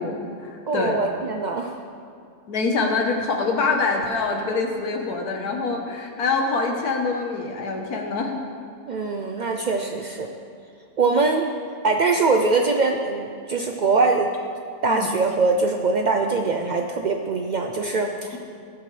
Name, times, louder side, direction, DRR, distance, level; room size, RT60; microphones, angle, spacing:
voice 1, 0.0-1.0 2.5-8.3 14.9-15.1, left 4 dB, 80° left, 2 dB, 1.6 m, -25 dB
voice 2, 0.7-1.7 8.9-10.3 11.0-11.5 11.8-14.3 14.8-18.4, right 3 dB, 70° right, 3 dB, 0.4 m, -22 dB
20.0 x 8.2 x 3.3 m, 2.4 s
omnidirectional pair, 1.6 m